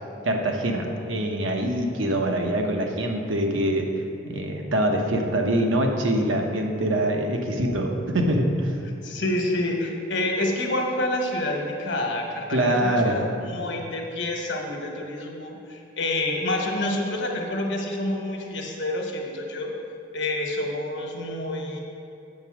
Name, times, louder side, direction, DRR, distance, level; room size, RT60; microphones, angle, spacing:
voice 1, 0.2-3.9 4.2-8.7 12.5-13.3, right 1 dB, 85° right, 2 dB, 0.9 m, -24 dB
voice 2, 9.0-19.7 20.1-21.8, left 1 dB, 65° left, 1 dB, 1.2 m, -28 dB
7.9 x 5.3 x 6.1 m, 2.7 s
head